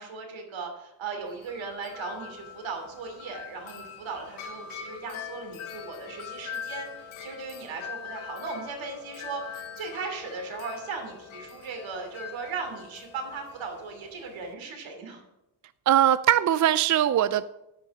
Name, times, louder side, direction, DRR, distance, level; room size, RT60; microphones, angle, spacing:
voice 1, 0.0-15.2, right 4 dB, 70° right, 3 dB, 2.9 m, -37 dB
Wind chime, 1.2-14.5, left 7 dB, 80° left, 1.5 m, -43 dB
voice 2, 15.9-17.4, right 11 dB, 40° right, 15 dB, 0.4 m, -21 dB
10.0 x 6.0 x 5.9 m, 0.89 s
cardioid pair, 75°, 48 cm